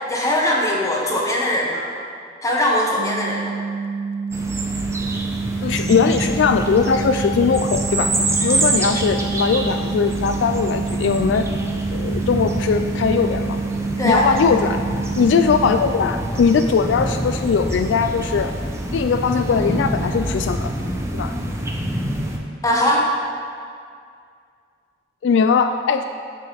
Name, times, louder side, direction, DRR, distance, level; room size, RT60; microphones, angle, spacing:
voice 1, 0.1-1.8 2.4-3.5 8.4-8.6 14.0-14.3 22.6-23.1, left 1 dB, 20° left, -3 dB, 1.3 m, -20 dB
sound 1, 3.0-15.8, right 5 dB, 50° right, 0.6 m, -28 dB
sound 2, 4.3-22.4, right 1 dB, 15° right, 0.7 m, -26 dB
voice 2, 5.6-8.1 8.4-11.5 11.9-13.6 14.0-14.8 15.2-18.5 18.9-20.7 21.1-21.3 25.2-26.0, left 5 dB, 70° left, 8 dB, 0.3 m, -19 dB
9.6 x 6.5 x 4.1 m, 2.2 s
head